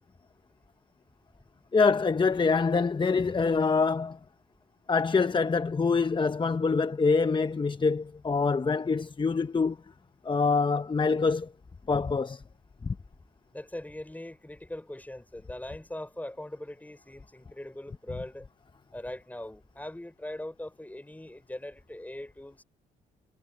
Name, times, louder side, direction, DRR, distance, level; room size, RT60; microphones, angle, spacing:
voice 1, 1.7-4.2 4.9-9.8 10.2-11.5 11.9-12.4 12.8-12.9, left 4 dB, 25° left, 0.9 m, -25 dB
voice 2, 13.5-18.5 18.9-22.6, left 1 dB, 10° left, 5.4 m, -41 dB
supercardioid pair, 65°, 18 cm